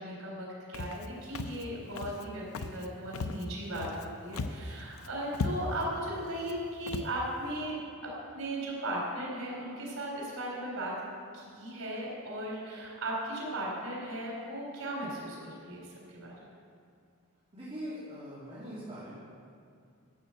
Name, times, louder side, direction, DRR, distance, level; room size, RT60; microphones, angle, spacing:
voice 1, 0.0-7.8 8.0-10.9 11.3-15.9 16.1-16.3, right 1 dB, 85° right, -4 dB, 3.5 m, -37 dB
Walk footsteps, 0.7-1.1 1.3-1.6 1.9-2.2 2.5-2.9 3.1-4.0 4.3-4.7 5.0-5.1 5.3-5.9 6.4-6.5 6.9-7.1, left 3 dB, 85° left, 0.6 m, -36 dB
voice 2, 17.5-19.1, equal, 30° right, -10 dB, 2.8 m, -42 dB
13.0 x 6.2 x 7.6 m, 2.3 s
head